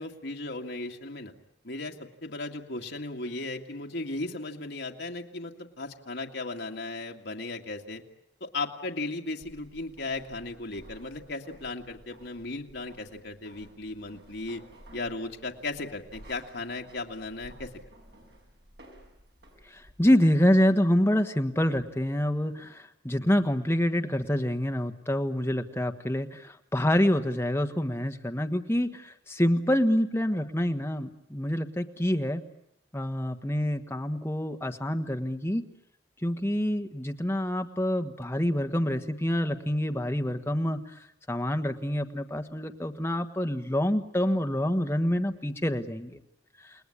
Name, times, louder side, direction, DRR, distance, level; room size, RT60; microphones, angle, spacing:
voice 1, 0.0-1.3 1.6-8.0 8.4-14.6 14.9-17.7, left 2 dB, 65° left, 1 dB, 2.1 m, -36 dB
sound 1, 9.4-20.1, right 1 dB, 60° right, 6.6 m, -54 dB
voice 2, 20.0-32.4 32.9-35.6 36.2-40.8 41.3-46.2, equal, 15° left, 6 dB, 1.4 m, -26 dB
29.5 x 19.5 x 9.9 m, 0.82 s
head